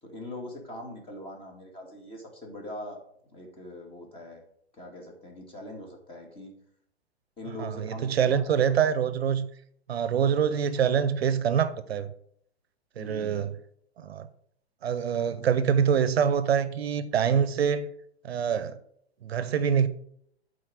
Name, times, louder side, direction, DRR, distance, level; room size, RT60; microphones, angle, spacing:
voice 1, 0.0-3.0 3.3-4.4 4.7-6.5 7.4-8.6 10.8-10.9 13.0-13.5, left 1 dB, 15° left, 2.2 m, -42 dB
voice 2, 7.6-9.5 9.9-12.1 13.0-13.5 14.0-14.3 14.8-17.9 18.2-18.8 19.2-19.9, right 7 dB, 70° right, 0.8 m, -25 dB
9.1 x 4.2 x 6.3 m
hypercardioid pair, 125°, 33 cm